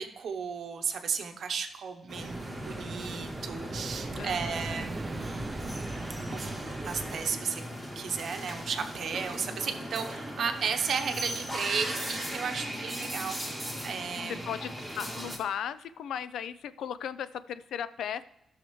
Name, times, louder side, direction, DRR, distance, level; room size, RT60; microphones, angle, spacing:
voice 1, 0.0-5.1 6.3-6.5 6.8-7.7 8.0-14.5, right 6 dB, 50° right, 7 dB, 0.8 m, -34 dB
sound 1, 2.1-15.4, equal, 5° left, 1.8 m, -38 dB
sound 2, 2.1-7.3, right 2 dB, 20° right, 0.4 m, -39 dB
voice 2, 4.2-4.8 12.7-12.8 14.5-14.7 15.0-18.2, left 9 dB, 80° left, 15 dB, 0.4 m, -36 dB
16.0 x 6.4 x 3.1 m, 0.84 s
wide cardioid pair, 175°, 0 cm